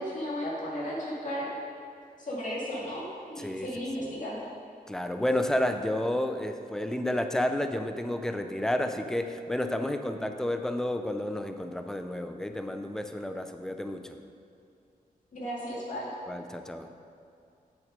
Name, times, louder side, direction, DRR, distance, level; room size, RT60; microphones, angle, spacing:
voice 1, 0.0-1.5 2.2-4.5 15.3-16.1, equal, 55° left, -6 dB, 2.2 m, -34 dB
voice 2, 3.4-3.7 4.9-14.2 16.3-16.9, left 1 dB, 5° left, 7 dB, 0.5 m, -31 dB
9.5 x 6.7 x 5.2 m, 2.5 s
wide cardioid pair, 115°, 16 cm